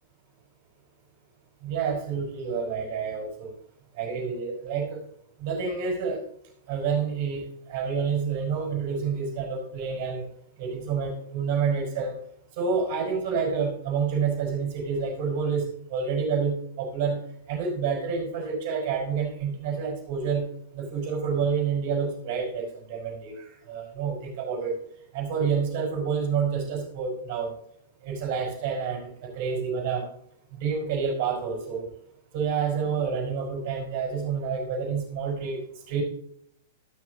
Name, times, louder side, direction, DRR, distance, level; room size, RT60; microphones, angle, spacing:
voice 1, 1.6-3.5 4.0-5.0 5.4-6.2 6.7-7.4 7.7-10.3 10.6-12.2 12.6-17.2 17.5-20.5 20.7-24.8 25.1-27.5 28.0-30.1 30.6-31.9 32.3-35.6 35.9-36.0, right 6 dB, 50° right, -3 dB, 4.7 m, -28 dB
13.5 x 6.3 x 3.9 m, 0.71 s
figure-of-eight pair, 105°, 0 cm